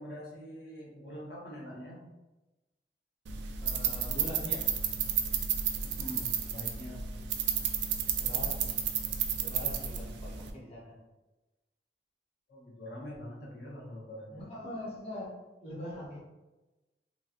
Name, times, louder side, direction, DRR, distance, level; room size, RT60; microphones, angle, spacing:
voice 1, 0.0-2.0 5.8-7.0 12.5-14.4, equal, 65° left, -4 dB, 0.8 m, -44 dB
sound 1, 3.3-10.5, right 8 dB, 75° right, 0.3 m, -32 dB
voice 2, 3.6-4.7 8.2-8.8 9.4-10.9 14.3-16.2, left 1 dB, 35° left, -5 dB, 0.8 m, -42 dB
3.0 x 2.7 x 2.4 m, 1.1 s
head